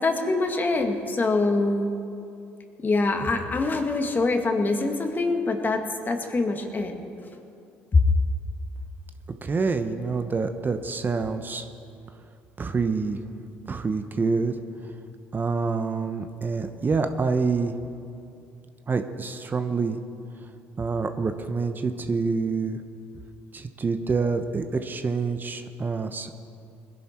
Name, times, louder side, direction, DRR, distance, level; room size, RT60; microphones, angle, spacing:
voice 1, 0.0-1.9 2.8-7.0 7.9-8.0, left 3 dB, 35° left, 4 dB, 1.8 m, -24 dB
voice 2, 9.4-11.7 12.6-13.2 13.7-14.5 15.3-17.7 18.9-20.0 20.8-22.8 23.5-26.3, right 4 dB, 35° right, 8 dB, 0.9 m, -27 dB
20.0 x 11.0 x 4.5 m, 2.6 s
hypercardioid pair, 65°, 6 cm